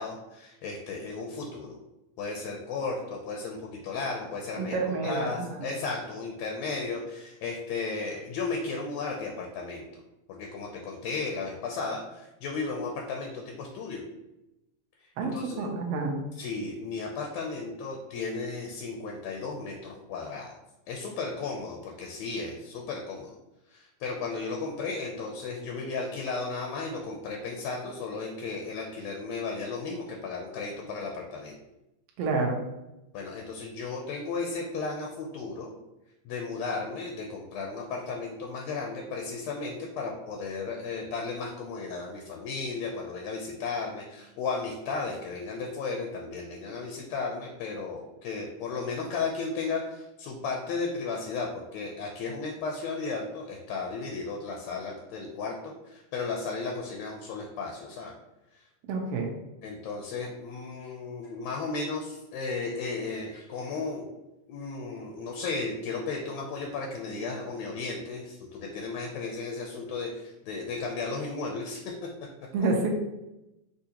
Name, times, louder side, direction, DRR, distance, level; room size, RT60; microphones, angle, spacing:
voice 1, 0.0-1.8 2.2-4.8 5.0-9.9 10.3-14.0 15.2-15.6 16.4-20.6 20.9-23.3 23.7-31.6 33.1-35.7 36.2-58.1 58.5-58.6 59.6-64.1 64.5-71.9, left 4 dB, 80° left, 0 dB, 1.6 m, -34 dB
voice 2, 4.6-5.7 15.2-16.2 32.2-32.6 58.9-59.3 72.5-72.9, right 3 dB, 75° right, 0 dB, 1.4 m, -29 dB
6.4 x 2.7 x 2.8 m, 0.95 s
omnidirectional pair, 3.4 m